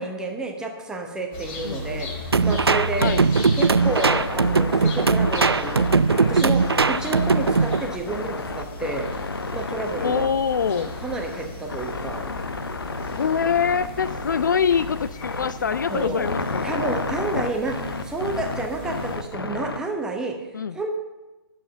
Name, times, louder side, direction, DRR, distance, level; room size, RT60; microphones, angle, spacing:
voice 1, 0.0-3.1 3.5-9.1 9.5-10.4 10.7-12.3 15.9-16.3 16.6-20.4 20.7-21.0, right 3 dB, 5° right, 2 dB, 1.0 m, -30 dB
sound 1, 1.3-19.3, left 1 dB, 20° left, 2.0 m, -36 dB
voice 2, 1.6-2.0 3.0-3.2 10.0-10.9 13.2-16.7 20.5-20.8, left 7 dB, 50° left, 13 dB, 0.4 m, -24 dB
sound 2, 2.3-7.8, right 4 dB, 75° right, 0.4 m, -20 dB
sound 3, 3.6-19.8, left 3 dB, 65° left, 0.8 m, -32 dB
11.0 x 7.5 x 6.8 m, 1.1 s
figure-of-eight pair, 135°, 13 cm